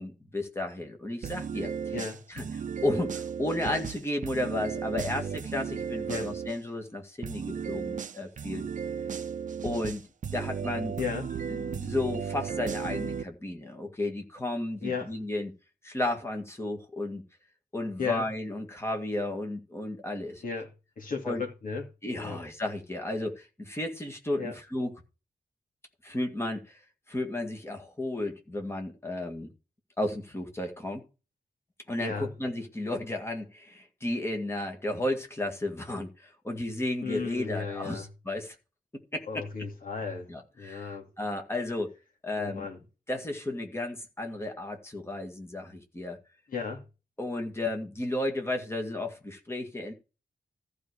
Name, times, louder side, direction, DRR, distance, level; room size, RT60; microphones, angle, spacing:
voice 1, 0.0-8.6 9.6-10.0 10.3-10.9 11.5-15.5 15.8-17.2 17.7-20.4 21.2-21.4 22.0-24.9 26.0-26.8 27.1-29.5 30.0-31.0 31.9-38.6 39.1-39.4 40.3-41.9 42.2-42.7 43.1-46.2 47.2-49.9, left 1 dB, 15° left, 2.0 m, -33 dB
sound 1, 1.2-6.6 7.2-13.2, right 7 dB, 60° right, 0.7 m, -35 dB
voice 2, 21.0-21.8 22.2-22.4 24.4-24.5 32.0-32.3 37.0-38.0 39.3-40.3 40.6-41.1 42.4-42.8 46.5-46.8, left 5 dB, 70° left, 2.5 m, -34 dB
14.5 x 4.9 x 4.8 m
wide cardioid pair, 170°, 15 cm